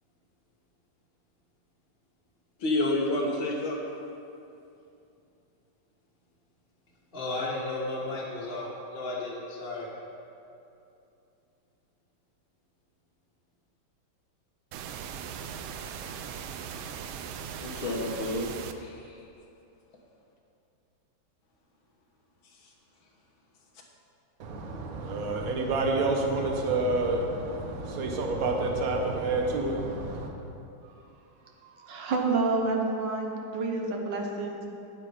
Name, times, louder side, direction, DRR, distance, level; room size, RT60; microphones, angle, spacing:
voice 1, 2.6-3.8 17.6-18.5 18.8-19.2, left 2 dB, 85° left, -1 dB, 2.1 m, -29 dB
voice 2, 7.1-9.9, left 2 dB, 30° left, -5 dB, 1.5 m, -34 dB
sound 1, 14.7-18.7, right 7 dB, 90° right, 1.4 m, -39 dB
voice 3, 24.4-30.3, right 2 dB, 50° right, 2 dB, 1.4 m, -28 dB
voice 4, 31.6-34.7, right 3 dB, 65° right, 1 dB, 1.7 m, -29 dB
9.3 x 9.0 x 5.0 m, 2.6 s
omnidirectional pair, 2.1 m